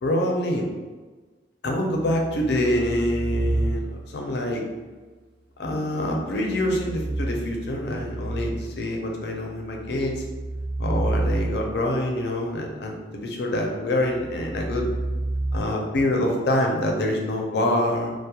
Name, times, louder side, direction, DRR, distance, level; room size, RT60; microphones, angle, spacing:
voice 1, 0.0-0.7 1.6-4.7 5.6-10.2 10.8-14.8 15.5-18.1, left 1 dB, 70° left, 1 dB, 0.5 m, -25 dB
sound 1, 1.9-4.2 6.3-8.9 9.6-12.0 14.1-15.6, right 2 dB, 70° right, 0.4 m, -30 dB
2.3 x 2.0 x 2.8 m, 1.3 s
head